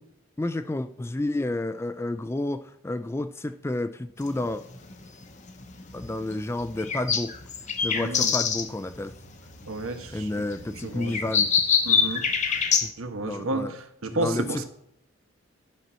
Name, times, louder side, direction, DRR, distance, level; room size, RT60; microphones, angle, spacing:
voice 1, 0.4-4.6 5.9-7.3 7.8-9.1 10.1-11.5 12.8-12.9 13.2-13.7 14.1-14.6, left 2 dB, 10° left, 0.3 m, -30 dB
sound 1, 4.2-12.9, left 6 dB, 35° left, 0.8 m, -27 dB
voice 2, 7.9-8.3 9.7-11.1 11.8-12.6 13.0-14.6, right 2 dB, 85° right, 1.1 m, -32 dB
10.5 x 4.3 x 6.1 m
head